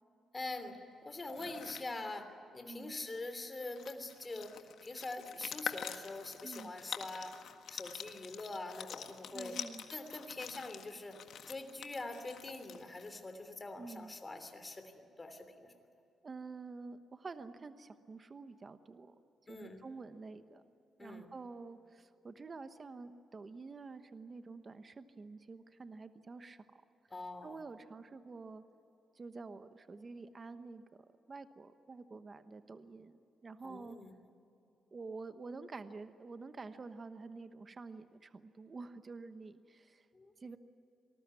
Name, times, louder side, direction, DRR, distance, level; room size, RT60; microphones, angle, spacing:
voice 1, 0.3-0.8 1.0-7.4 7.7-9.6 9.9-11.2 11.5-14.8 15.2-15.7 19.5-19.8 21.0-21.3 27.1-27.6 33.6-34.1 40.1-40.3, left 2 dB, 20° left, 7 dB, 3.0 m, -44 dB
sound 1, 1.2-1.9 3.3-3.4 3.6-13.2, left 8 dB, 70° left, 1.7 m, -46 dB
voice 2, 6.4-6.7 9.3-9.8 13.8-14.1 16.2-19.1 19.5-20.6 21.0-26.6 27.4-28.6 29.1-30.8 31.3-34.0 34.9-40.1 40.4-40.6, right 4 dB, 30° right, 10 dB, 1.1 m, -48 dB
26.5 x 20.0 x 9.7 m, 2.8 s
cardioid pair, 135°, 0 cm